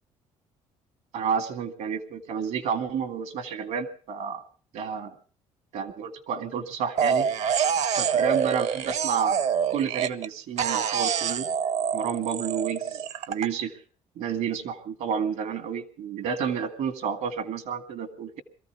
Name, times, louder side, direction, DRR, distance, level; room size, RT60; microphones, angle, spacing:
voice 1, 1.1-4.4 4.7-5.1 5.7-7.3 8.0-9.4 9.7-11.5 11.9-13.0 13.3-13.7 14.2-18.4, right 7 dB, 75° right, 9 dB, 2.0 m, -30 dB
sound 1, 7.0-10.3 10.6-13.5, right 7 dB, 60° right, 0.9 m, -26 dB
22.5 x 14.0 x 4.7 m, 0.41 s
supercardioid pair, 75°, 13 cm